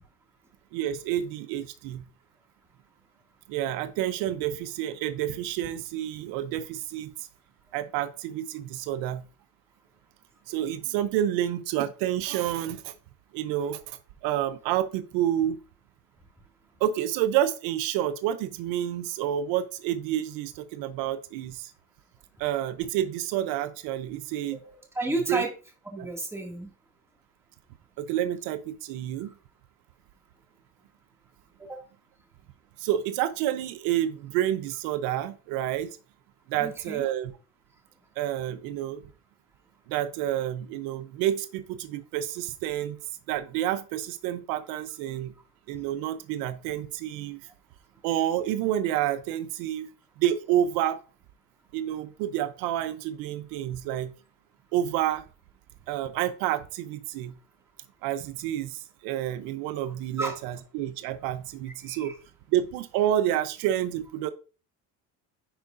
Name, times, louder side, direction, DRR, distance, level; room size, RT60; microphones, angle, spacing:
voice 1, 0.7-2.0 3.5-7.1 7.7-9.2 10.5-12.9 13.3-15.6 16.8-21.7 22.4-24.6 25.3-25.5 26.0-26.1 28.0-29.3 32.8-35.9 36.5-37.3 38.2-39.0 39.9-43.0 43.3-45.3 45.7-47.4 48.0-49.9 50.2-51.0 51.7-54.1 54.7-55.2 55.9-57.3 58.0-62.1 62.5-64.3, right 11 dB, 85° right, 12 dB, 0.7 m, -29 dB
voice 2, 24.5-25.5 25.9-26.7 31.6-31.8 36.6-37.0 60.2-60.4 61.8-62.2, right 2 dB, 5° right, 0 dB, 2.2 m, -32 dB
10.0 x 4.7 x 2.6 m, 0.35 s
cardioid pair, 115°, 35 cm